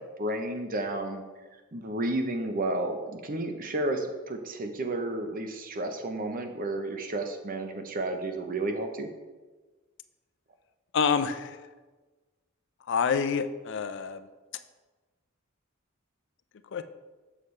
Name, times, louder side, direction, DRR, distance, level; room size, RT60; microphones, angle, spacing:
voice 1, 0.2-1.2 1.7-9.1, right 2 dB, 40° right, 5 dB, 0.7 m, -32 dB
voice 2, 10.9-11.6 12.9-14.2 16.7-16.8, left 6 dB, 60° left, 11 dB, 0.4 m, -27 dB
6.9 x 6.5 x 3.2 m, 1.3 s
head